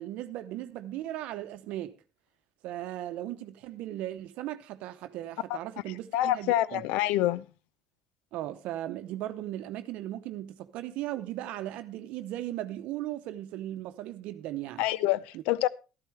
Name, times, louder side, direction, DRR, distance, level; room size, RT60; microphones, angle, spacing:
voice 1, 0.0-1.9 2.6-6.8 8.3-14.8 15.3-15.4, right 13 dB, 70° right, 0.8 m, -37 dB
voice 2, 6.1-7.4 14.8-15.7, left 14 dB, 75° left, 0.5 m, -26 dB
13.0 x 12.0 x 3.2 m
supercardioid pair, 80°, 2 cm